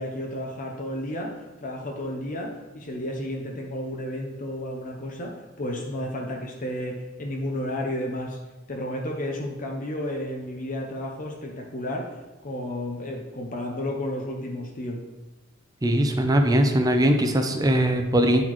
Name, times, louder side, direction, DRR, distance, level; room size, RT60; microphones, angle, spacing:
voice 1, 0.0-8.4 8.7-15.0, left 1 dB, 45° left, 1 dB, 0.6 m, -32 dB
voice 2, 15.8-18.4, right 1 dB, 20° right, 5 dB, 0.5 m, -20 dB
8.9 x 4.0 x 3.1 m, 1.1 s
head